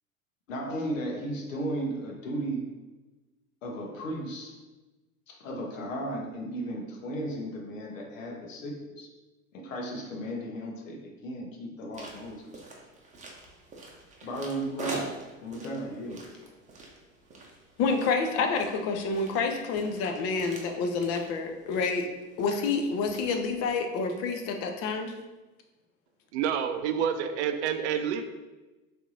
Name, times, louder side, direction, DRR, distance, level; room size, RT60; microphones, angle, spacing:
voice 1, 0.5-2.7 3.6-4.6 5.3-9.1 9.5-12.4 14.2-16.3, right 1 dB, 70° left, 1 dB, 0.9 m, -35 dB
sound 1, 11.9-23.7, right 2 dB, 20° right, 0.8 m, -45 dB
voice 2, 17.8-22.1 22.4-25.1, left 4 dB, 35° left, 5 dB, 0.6 m, -28 dB
voice 3, 26.3-28.2, right 8 dB, 55° right, 8 dB, 0.5 m, -28 dB
4.4 x 3.3 x 2.7 m, 1.1 s
figure-of-eight pair, 80°, 41 cm